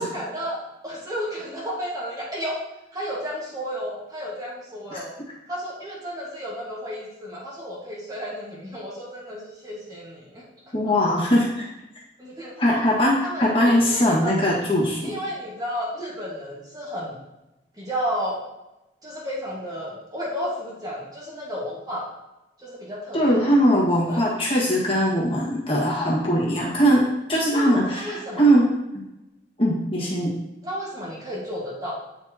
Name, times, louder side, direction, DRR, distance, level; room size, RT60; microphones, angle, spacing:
voice 1, 0.0-2.6 2.9-5.1 5.5-10.4 12.2-12.5 13.2-14.6 15.0-17.2 17.8-18.4 19.0-22.1 22.6-23.4 24.1-24.2 27.5-28.5 30.6-31.9, equal, 20° right, -5 dB, 1.6 m, -32 dB
voice 2, 10.7-11.5 12.6-15.0 23.1-27.0 27.3-28.7 28.9-29.0 29.6-30.3, equal, 30° left, -5 dB, 1.6 m, -20 dB
8.8 x 4.5 x 2.9 m, 0.96 s
head